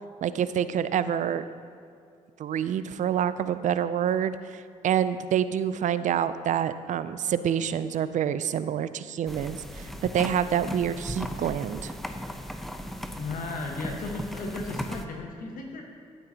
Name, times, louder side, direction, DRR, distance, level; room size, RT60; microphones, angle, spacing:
voice 1, 0.2-1.4 2.4-11.9, right 9 dB, 60° right, 13 dB, 0.4 m, -27 dB
sound 1, 9.3-15.0, equal, ahead, 0.7 m, -37 dB
voice 2, 13.2-15.8, left 3 dB, 70° left, 1 dB, 1.3 m, -35 dB
10.0 x 9.1 x 2.8 m, 2.3 s
supercardioid pair, 60°, 15 cm